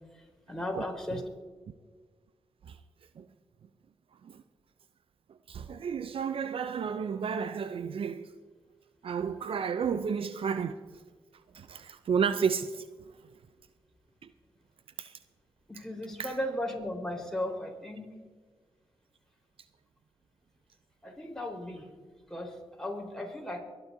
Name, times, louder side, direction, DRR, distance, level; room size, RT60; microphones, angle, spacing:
voice 1, 0.1-1.2 15.7-18.1 21.0-21.9 22.3-23.6, left 1 dB, 5° left, 4.2 m, -36 dB
voice 2, 5.5-8.3 9.0-10.8 11.5-12.8 15.0-15.1 16.2-16.3, right 6 dB, 65° right, 0.5 m, -31 dB
24.0 x 11.0 x 2.7 m
cardioid pair, 55°, 10 cm